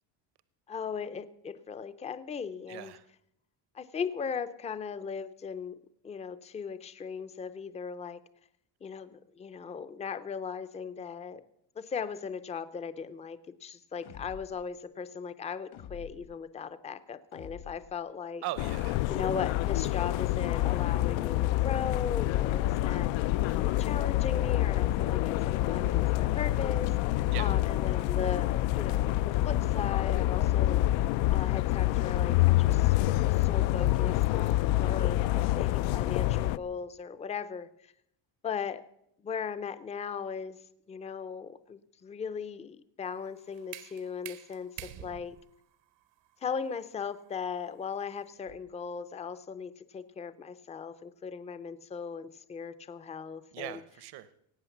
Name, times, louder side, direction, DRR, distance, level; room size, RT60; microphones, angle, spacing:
voice 1, 0.7-2.9 3.7-5.7 6.0-8.2 8.8-11.4 11.8-18.4 19.1-23.1 23.5-26.9 27.4-30.9 31.3-32.9 33.3-37.7 38.4-38.8 39.2-40.6 40.9-45.4 46.4-53.8, left 6 dB, 15° left, 13 dB, 0.4 m, -38 dB
voice 2, 2.7-3.1 18.4-19.0 23.5-23.6 27.3-27.5 53.5-54.3, right 14 dB, 60° right, 15 dB, 0.8 m, -40 dB
sound 1, 14.0-14.7 15.7-16.4 17.3-18.0 19.1-19.7 20.8-21.4 22.8-23.4, left 10 dB, 60° left, 1.2 m, -47 dB
sound 2, 18.6-36.6, left 15 dB, 90° left, 0.6 m, -27 dB
sound 3, 43.0-48.8, right 13 dB, 75° right, 1.1 m, -49 dB
17.5 x 8.5 x 7.1 m, 0.76 s
cardioid pair, 160°, 44 cm